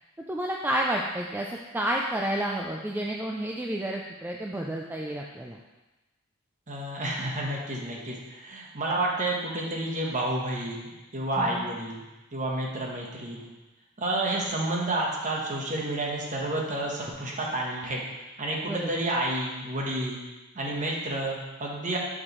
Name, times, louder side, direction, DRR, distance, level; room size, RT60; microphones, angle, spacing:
voice 1, 0.3-5.6 11.4-11.7 18.7-18.9, right 1 dB, 10° right, -1 dB, 0.3 m, -30 dB
voice 2, 6.7-12.0 12.3-13.4 14.0-18.0 18.4-20.2 20.5-22.0, right 1 dB, 35° right, -2 dB, 1.1 m, -30 dB
6.2 x 6.2 x 3.1 m, 1.1 s
head